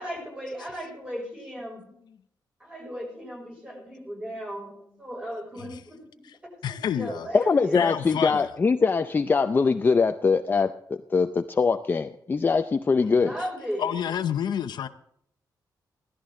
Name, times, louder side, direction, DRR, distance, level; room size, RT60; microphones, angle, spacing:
voice 1, 0.0-1.9 2.6-4.7 5.0-7.8 13.0-13.9, equal, 15° right, 6.1 m, -36 dB
voice 2, 6.6-7.3 7.7-8.5 13.2-13.3 13.8-14.9, left 9 dB, 75° left, 0.8 m, -29 dB
voice 3, 7.3-13.3, left 4 dB, 25° left, 0.5 m, -23 dB
16.5 x 13.0 x 3.8 m
wide cardioid pair, 150°, 7 cm